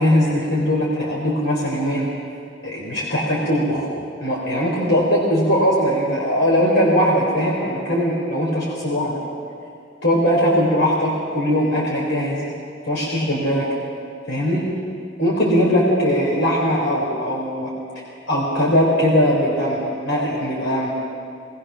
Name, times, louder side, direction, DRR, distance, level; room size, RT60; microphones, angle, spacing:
voice 1, 0.0-2.2 2.6-3.9 4.2-9.2 10.0-12.5 12.9-13.7 14.3-14.7 15.2-20.9, equal, 85° left, -4 dB, 3.9 m, -20 dB
21.0 x 20.0 x 6.3 m, 2.4 s
head